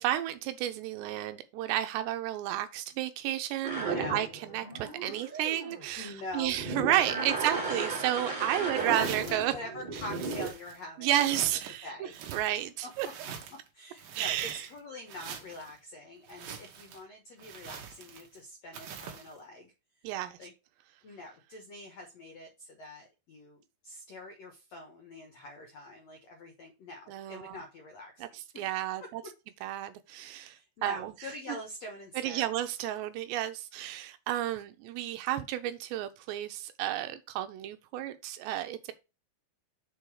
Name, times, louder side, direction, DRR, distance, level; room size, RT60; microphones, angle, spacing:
voice 1, 0.0-4.3 4.5-9.5 11.0-11.9 12.3-13.1 14.2-14.7 20.0-20.4 27.1-27.6 28.2-28.3 28.6-29.2 29.6-31.1 32.2-38.9, right 13 dB, 85° right, 2.8 m, -32 dB
sound 1, 3.6-6.0 6.3-10.5, right 3 dB, 15° right, 1.5 m, -35 dB
voice 2, 3.8-4.3 5.1-5.4 6.0-6.6 8.1-8.3 8.6-11.5 11.8-12.3 12.8-12.9 13.7-20.1 20.4-20.5 21.0-28.7 29.0-29.1 30.4-32.4, left 1 dB, 75° left, 1.5 m, -45 dB
sound 2, 8.8-9.5 9.9-10.8 11.1-11.8 12.1-13.7 14.0-14.8 15.1-15.7 16.3-17.0 17.4-18.4 18.7-19.3, right 7 dB, 65° right, 2.4 m, -44 dB
6.9 x 4.5 x 4.7 m
omnidirectional pair, 5.2 m